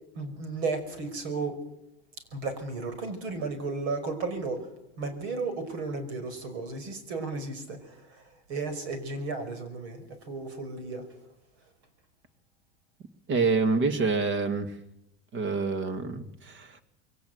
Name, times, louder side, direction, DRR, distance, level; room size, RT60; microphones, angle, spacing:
voice 1, 0.1-1.6 2.3-4.7 5.0-11.1, right 3 dB, 70° right, 9 dB, 5.5 m, -34 dB
voice 2, 13.3-14.8 15.3-16.8, right 4 dB, 35° right, 10 dB, 2.2 m, -27 dB
22.5 x 17.5 x 8.2 m, 0.88 s
supercardioid pair, 155°, 33 cm